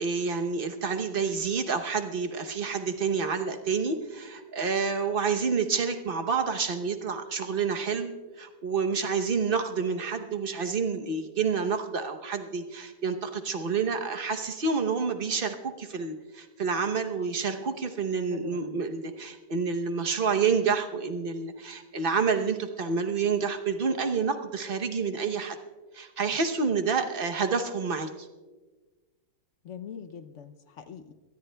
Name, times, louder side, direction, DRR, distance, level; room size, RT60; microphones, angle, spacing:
voice 1, 0.0-8.1 8.4-25.6 25.9-28.3, right 5 dB, 45° right, 6 dB, 0.7 m, -28 dB
voice 2, 18.3-18.8 29.6-31.1, left 7 dB, 70° left, 8 dB, 0.7 m, -43 dB
24.5 x 18.5 x 2.2 m, 1.3 s
omnidirectional pair, 2.0 m